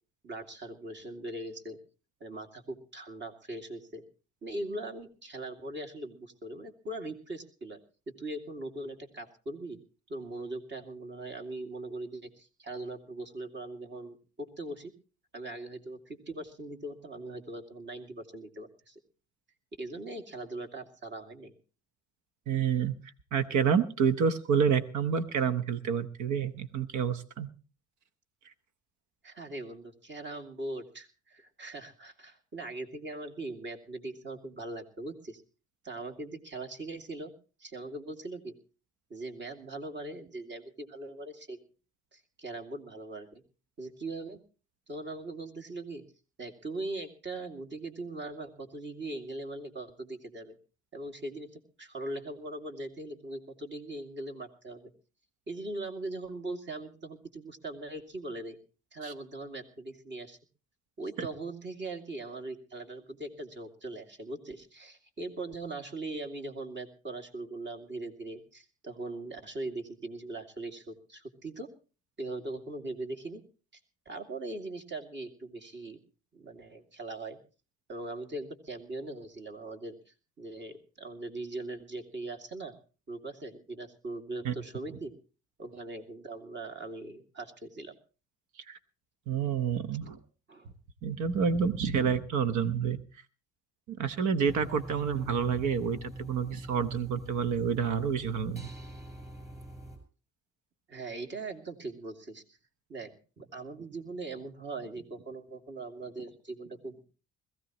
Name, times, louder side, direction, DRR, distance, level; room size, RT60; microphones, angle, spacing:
voice 1, 0.2-1.8 2.2-4.0 4.4-7.8 8.2-9.8 10.1-14.9 15.3-19.0 19.8-21.5 29.2-35.4 35.8-37.3 37.6-38.5 39.1-41.6 42.1-43.4 43.8-44.4 44.9-46.0 46.4-50.5 50.9-54.9 55.5-58.6 58.9-60.4 61.0-71.7 72.2-73.4 74.1-76.0 76.3-77.4 77.9-80.0 80.4-82.7 83.1-85.1 85.6-87.9 90.5-90.7 100.9-102.6 102.9-103.1 103.4-107.1, right 2 dB, 40° right, 4 dB, 2.5 m, -40 dB
voice 2, 22.5-22.9 23.3-27.5 59.0-59.1 61.2-61.3 84.4-84.5 88.7-88.8 89.3-90.2 91.0-93.0 93.9-98.7, right 7 dB, 85° right, 11 dB, 1.1 m, -28 dB
sound 1, 94.5-100.0, right 1 dB, 10° right, 6.2 m, -44 dB
21.5 x 15.5 x 3.0 m, 0.34 s
cardioid pair, 105°, 29 cm